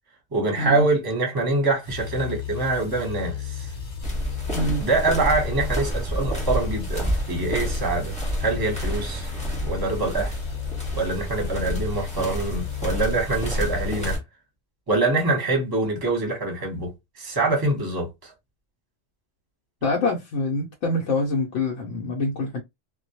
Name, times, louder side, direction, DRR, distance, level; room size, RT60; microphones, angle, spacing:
voice 1, 0.3-3.7 4.8-9.3 9.7-10.3 10.9-14.2 14.9-16.9 17.2-18.3, right 3 dB, 20° right, 0.7 m, -25 dB
sound 1, 1.8-14.2, left 7 dB, 45° left, 0.8 m, -34 dB
sound 2, 4.0-14.2, equal, 5° left, 0.9 m, -30 dB
voice 2, 19.8-22.6, left 2 dB, 80° left, 0.9 m, -25 dB
2.2 x 2.1 x 2.7 m
omnidirectional pair, 1.2 m